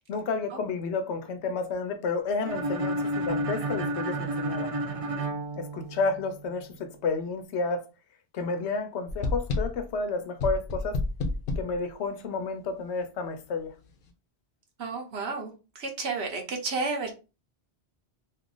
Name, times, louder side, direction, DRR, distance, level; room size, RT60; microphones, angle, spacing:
voice 1, 0.1-4.7 5.6-7.9 8.3-11.0 11.6-13.7, left 4 dB, 85° left, 0.9 m, -31 dB
sound 1, 2.4-6.3, right 1 dB, 45° right, 0.5 m, -31 dB
sound 2, 9.1-9.9 10.4-11.8, left 3 dB, 65° left, 0.7 m, -29 dB
voice 2, 14.8-17.1, right 4 dB, 75° right, 1.0 m, -32 dB
2.7 x 2.4 x 3.7 m
omnidirectional pair, 1.1 m